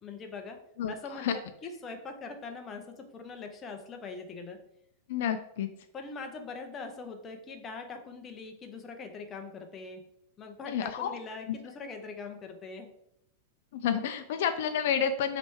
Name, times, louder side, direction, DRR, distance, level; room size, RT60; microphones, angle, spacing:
voice 1, 0.0-0.6 0.9-1.3 1.6-4.6 5.9-10.0 10.4-12.9, left 4 dB, 20° left, 5 dB, 0.6 m, -42 dB
voice 2, 0.8-1.4 5.1-5.7 10.6-11.2 13.7-15.4, left 8 dB, 65° left, 8 dB, 0.3 m, -30 dB
3.2 x 2.9 x 4.6 m, 0.75 s
supercardioid pair, 140°, 0 cm